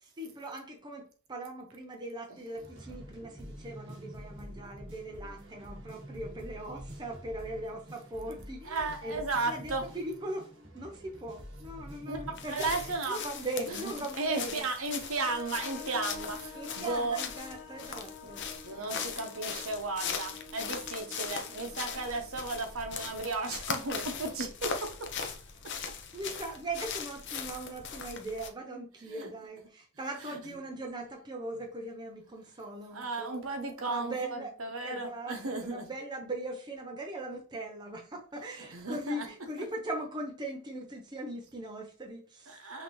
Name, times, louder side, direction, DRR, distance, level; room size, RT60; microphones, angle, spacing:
voice 1, 0.2-10.4 10.7-14.7 16.5-18.5 26.1-33.4 33.8-34.5 34.8-42.7, right 1 dB, 20° right, 0.6 m, -40 dB
sound 1, 2.5-13.0, equal, 55° right, 1.7 m, -47 dB
voice 2, 8.7-9.8 12.1-13.2 13.7-17.2 18.6-25.3 29.1-29.3 32.9-35.9 38.7-39.3 42.5-42.8, right 3 dB, 70° right, 1.0 m, -35 dB
sound 2, 12.4-28.5, left 6 dB, 55° left, 0.6 m, -40 dB
sound 3, 15.2-23.2, left 4 dB, 70° left, 1.1 m, -48 dB
5.7 x 2.8 x 3.1 m
head